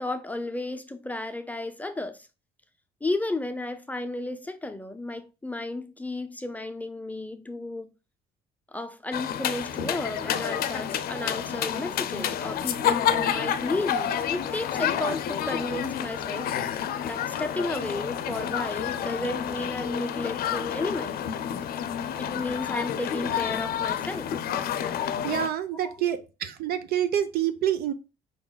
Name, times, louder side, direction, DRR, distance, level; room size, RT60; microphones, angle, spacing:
voice 1, 0.0-2.3 3.0-7.9 8.7-21.2 22.2-24.3 25.8-26.1, left 2 dB, 10° left, 0.5 m, -33 dB
sound 1, 9.1-25.5, left 9 dB, 60° left, 0.5 m, -29 dB
voice 2, 25.2-27.9, right 10 dB, 65° right, 0.7 m, -27 dB
5.0 x 3.8 x 2.2 m
cardioid pair, 110°, 17 cm